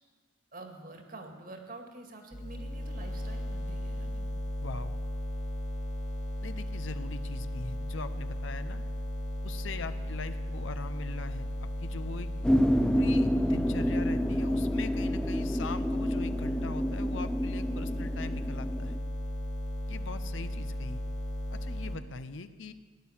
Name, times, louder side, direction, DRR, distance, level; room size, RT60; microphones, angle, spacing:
voice 1, 0.5-4.3, right 2 dB, 45° right, 4 dB, 2.1 m, -47 dB
sound 1, 2.3-22.0, equal, 40° left, 2.0 m, -35 dB
voice 2, 4.6-5.0 6.4-8.8 9.4-12.3 12.8-18.9 19.9-21.0 21.5-22.7, left 4 dB, 75° left, 11 dB, 0.7 m, -41 dB
sound 2, 12.4-19.0, equal, 5° left, 0.5 m, -29 dB
17.5 x 10.5 x 7.3 m, 1.4 s
head